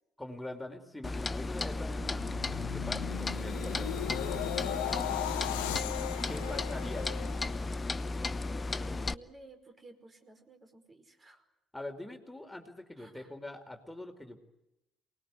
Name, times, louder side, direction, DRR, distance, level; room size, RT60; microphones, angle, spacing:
voice 1, 0.2-4.4 6.3-7.3 11.7-14.4, left 1 dB, 10° left, 5 dB, 4.3 m, -43 dB
Clock, 1.0-9.1, left 3 dB, 30° left, 0.9 m, -35 dB
sound 1, 1.8-8.0 8.4-8.7, left 12 dB, 80° left, 1.1 m, -38 dB
voice 2, 6.0-7.1 8.7-11.4 13.0-13.3, right 2 dB, 35° right, 7 dB, 5.2 m, -55 dB
28.0 x 20.0 x 9.6 m, 0.91 s
hypercardioid pair, 45°, 0 cm